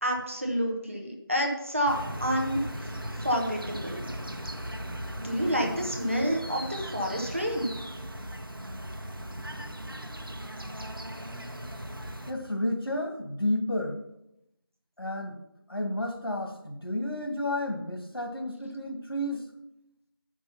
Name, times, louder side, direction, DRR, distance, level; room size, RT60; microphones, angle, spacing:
voice 1, 0.0-2.9 3.2-4.0 5.2-7.7, equal, 35° right, 1 dB, 1.3 m, -29 dB
sound 1, 1.9-12.3, equal, 70° right, 1.3 m, -38 dB
voice 2, 12.3-14.0 15.0-15.4 15.7-19.4, left 1 dB, 80° left, 3 dB, 1.9 m, -31 dB
7.5 x 6.1 x 5.6 m, 0.84 s
figure-of-eight pair, 180°, 12 cm